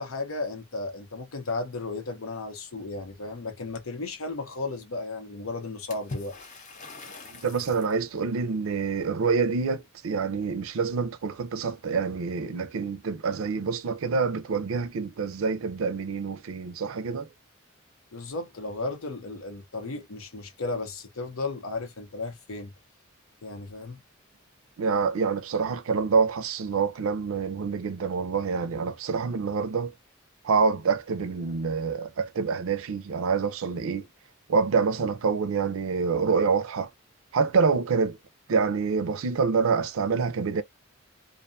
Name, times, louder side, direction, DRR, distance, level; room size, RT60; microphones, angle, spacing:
voice 1, 0.0-6.3 18.1-22.7 23.4-24.0, left 3 dB, 90° left, 0.8 m, -34 dB
Water / Splash splatter, 5.9-8.0, left 2 dB, 35° left, 0.7 m, -41 dB
voice 2, 7.3-17.3 24.8-29.9 30.4-34.1 34.5-36.9 37.3-38.2 38.5-40.6, right 5 dB, 80° right, 0.4 m, -26 dB
2.5 x 2.3 x 2.4 m
head